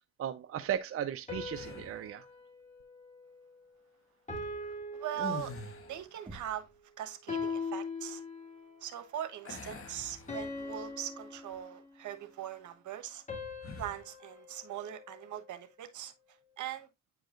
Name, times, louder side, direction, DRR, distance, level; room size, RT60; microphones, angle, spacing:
voice 1, 0.2-2.2, right 10 dB, 50° right, 0.6 m, -36 dB
sound 1, 1.3-3.8 4.3-6.0 7.3-8.8 10.3-12.2 13.3-15.6, left 3 dB, 25° left, 2.8 m, -42 dB
sound 2, 1.5-2.2 5.1-6.2 9.4-10.9 11.4-11.6 13.6-14.1, left 3 dB, 45° left, 1.5 m, -45 dB
voice 2, 4.9-5.5 5.9-6.7 7.0-8.2 8.8-13.2 13.8-16.1 16.6-16.9, right 10 dB, 75° right, 1.1 m, -40 dB
Knock, 6.3-6.9, right 2 dB, 15° right, 1.8 m, -49 dB
8.9 x 4.8 x 2.5 m
cardioid pair, 90°, 30 cm